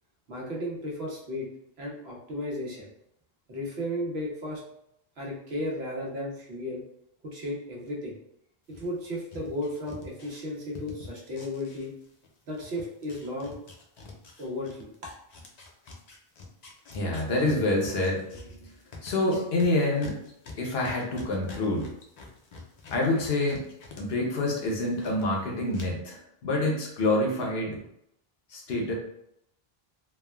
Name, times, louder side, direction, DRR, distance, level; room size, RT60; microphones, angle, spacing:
voice 1, 0.3-1.5 1.8-2.9 3.5-4.6 5.2-6.8 7.2-8.2 8.7-11.9 12.5-13.6 14.4-14.9, left 1 dB, 85° right, -2 dB, 1.1 m, -34 dB
sound 1, 8.7-12.3 12.5-24.0 24.3-25.3 25.7-25.8, left 3 dB, 50° left, 0.5 m, -46 dB
voice 2, 16.9-18.3 18.6-18.7 19.0-20.2 20.6-21.9 22.9-23.6 24.0-27.8 28.5-28.9, left 2 dB, 80° left, -1 dB, 1.0 m, -27 dB
3.3 x 2.1 x 2.2 m, 0.76 s
omnidirectional pair, 1.0 m